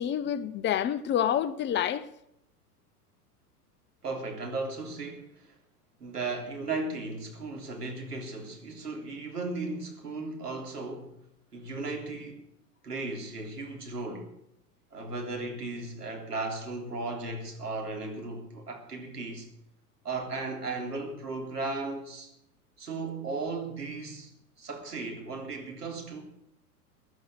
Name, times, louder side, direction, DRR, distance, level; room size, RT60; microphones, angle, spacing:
voice 1, 0.0-2.1, left 10 dB, 25° left, 0.7 m, -28 dB
voice 2, 4.0-5.5 6.0-11.2 11.5-12.4 12.8-14.3 14.9-19.5 20.0-22.3 22.8-26.2, right 3 dB, 85° right, 3.6 m, -36 dB
16.0 x 11.0 x 6.4 m
figure-of-eight pair, 95°, 46 cm